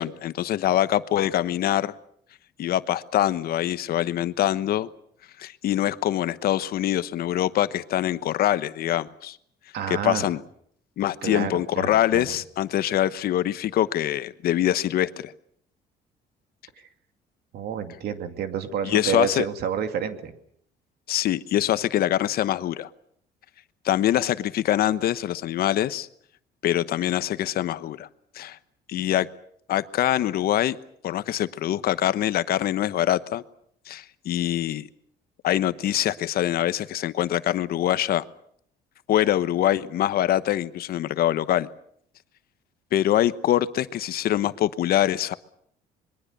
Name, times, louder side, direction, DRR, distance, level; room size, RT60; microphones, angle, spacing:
voice 1, 0.0-1.9 2.6-4.9 5.4-9.4 9.9-10.4 11.0-15.3 18.8-19.5 21.1-22.9 23.8-26.1 26.6-28.1 28.3-28.6 28.9-29.3 29.7-30.8 31.0-33.4 33.9-34.9 35.4-38.2 39.1-41.7 42.9-45.4, left 12 dB, 65° left, 14 dB, 1.1 m, -24 dB
voice 2, 9.7-10.3 11.2-12.4 16.8-16.9 17.5-20.3, right 8 dB, 70° right, 8 dB, 2.6 m, -29 dB
26.0 x 22.5 x 6.8 m, 0.67 s
cardioid pair, 110°, 17 cm